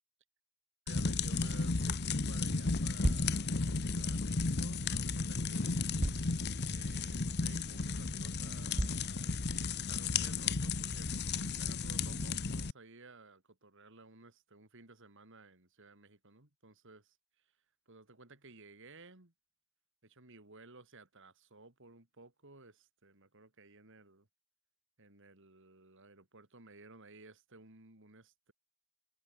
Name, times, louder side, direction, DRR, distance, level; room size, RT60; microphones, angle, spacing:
sound 1, 0.9-12.7, left 4 dB, 50° left, 1.0 m, -34 dB
voice 1, 0.9-5.9 6.7-17.6 17.9-19.3 20.0-24.3 25.0-28.5, right 3 dB, 60° right, 3.1 m, -57 dB
sound 2, 3.0-3.4 4.9-5.0 6.0-6.4 6.9-7.0 7.6-7.7 8.8-9.1, right 1 dB, 30° right, 2.3 m, -33 dB
open air
head